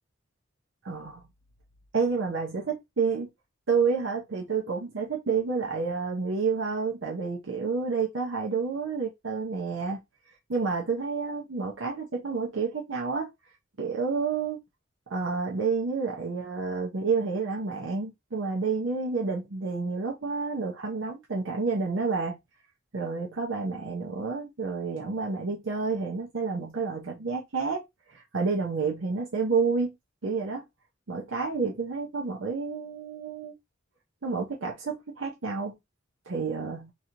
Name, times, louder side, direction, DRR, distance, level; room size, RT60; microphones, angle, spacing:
voice 1, 0.8-1.2 1.9-2.6 3.0-3.3 3.7-10.0 10.5-13.3 13.8-14.6 15.1-22.4 22.9-27.8 28.1-29.9 30.2-30.6 31.1-33.5 34.2-35.7 36.3-36.9, right 4 dB, 70° right, 0.7 m, -29 dB
3.0 x 2.6 x 2.8 m
head